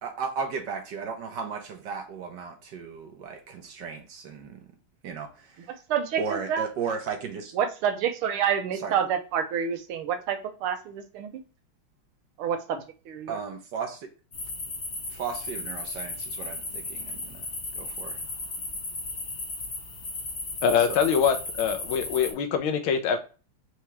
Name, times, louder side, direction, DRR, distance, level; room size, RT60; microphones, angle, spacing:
voice 1, 0.0-4.6 5.0-5.8 6.1-7.5 8.7-9.1 13.3-14.1 15.1-17.5 17.7-18.2 20.8-21.0, right 5 dB, 65° right, 5 dB, 1.3 m, -35 dB
voice 2, 5.7-6.6 7.6-11.4 12.4-13.3, right 8 dB, 90° right, 6 dB, 1.6 m, -28 dB
sound 1, 14.3-22.3, left 2 dB, 50° left, 0.6 m, -35 dB
voice 3, 20.6-23.2, left 7 dB, 75° left, 6 dB, 1.5 m, -24 dB
4.7 x 2.8 x 3.1 m, 0.35 s
omnidirectional pair, 2.3 m